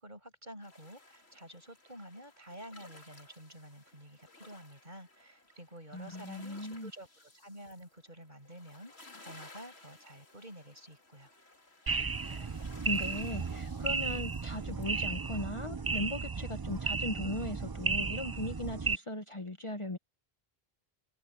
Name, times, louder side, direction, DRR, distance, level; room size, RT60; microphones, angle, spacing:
voice 1, 0.0-11.3, equal, 45° right, 6.8 m, -50 dB
sound 1, 0.6-15.4, left 2 dB, 85° left, 3.6 m, -58 dB
voice 2, 5.9-6.9 12.2-12.5 12.8-20.0, left 1 dB, 30° left, 1.2 m, -38 dB
sound 2, 11.9-19.0, right 4 dB, 30° right, 0.5 m, -34 dB
omnidirectional pair, 1.1 m